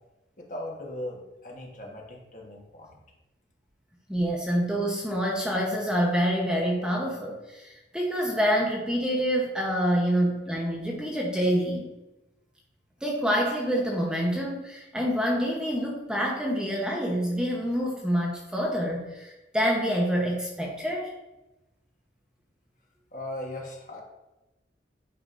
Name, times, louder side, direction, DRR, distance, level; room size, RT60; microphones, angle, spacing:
voice 1, 0.4-3.0 23.1-24.0, left 1 dB, 45° left, -1 dB, 1.3 m, -38 dB
voice 2, 4.1-11.9 13.0-21.1, equal, 5° right, -2 dB, 0.9 m, -27 dB
9.2 x 5.1 x 2.6 m, 1.0 s
head